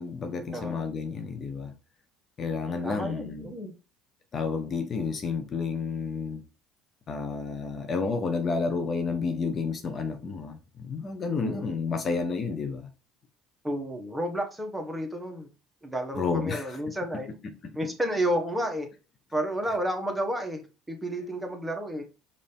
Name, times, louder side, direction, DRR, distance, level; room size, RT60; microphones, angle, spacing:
voice 1, 0.0-1.7 2.4-3.5 4.3-6.4 7.1-12.9 16.1-16.8 17.6-17.7, left 4 dB, 40° left, 0.7 m, -30 dB
voice 2, 0.5-0.9 2.8-3.7 11.4-11.7 13.6-15.5 15.8-17.3 17.7-18.9 19.3-22.0, equal, 10° right, 1.2 m, -31 dB
5.2 x 2.7 x 3.5 m
supercardioid pair, 85°, 0 cm